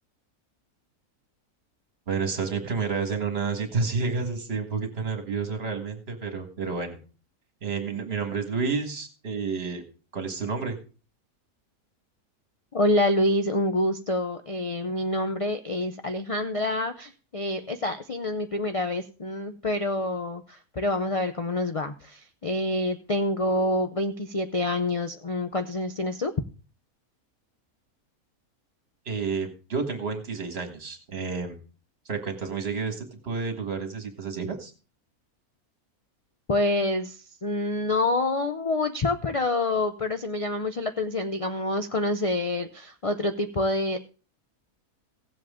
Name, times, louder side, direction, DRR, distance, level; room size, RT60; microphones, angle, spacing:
voice 1, 2.1-7.0 7.6-9.8 10.1-10.8 29.1-31.6 32.1-34.7, right 5 dB, 45° right, 6 dB, 1.9 m, -30 dB
voice 2, 12.7-26.3 36.5-44.0, left 1 dB, 65° left, 7 dB, 0.3 m, -27 dB
16.5 x 7.6 x 3.6 m, 0.36 s
omnidirectional pair, 1.6 m